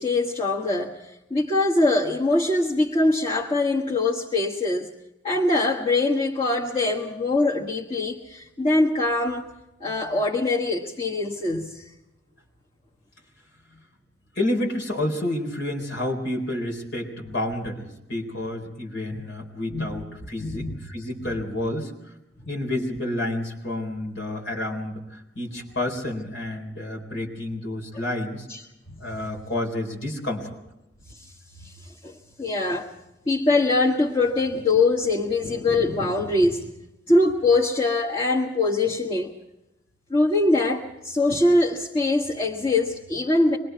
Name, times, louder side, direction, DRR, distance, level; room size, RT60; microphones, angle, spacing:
voice 1, 0.0-4.9 5.2-9.5 9.8-11.8 19.1-19.2 19.7-19.9 20.4-20.8 21.2-21.4 28.5-28.6 28.9-29.0 31.2-31.3 31.6-32.9 33.2-36.7 37.1-39.3 40.1-43.6, left 2 dB, 30° left, -3 dB, 1.5 m, -23 dB
voice 2, 14.4-21.9 22.5-28.4 29.0-30.5, left 1 dB, 85° left, 1 dB, 4.2 m, -29 dB
26.0 x 21.5 x 4.7 m, 0.92 s
head